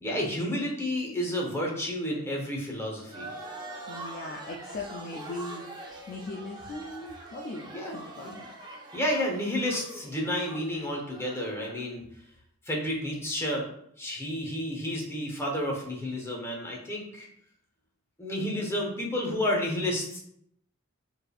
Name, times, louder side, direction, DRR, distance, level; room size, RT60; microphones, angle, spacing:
voice 1, 0.0-3.3 7.7-8.0 8.2-8.3 8.9-12.0 12.6-13.7 14.0-17.3 18.2-20.2, left 1 dB, 15° left, -2 dB, 1.0 m, -31 dB
sound 1, 3.1-11.8, right 2 dB, 20° right, 0.7 m, -44 dB
voice 2, 3.9-8.5 10.2-10.7, left 2 dB, 45° left, 0 dB, 0.4 m, -40 dB
4.5 x 3.4 x 2.4 m, 0.70 s
head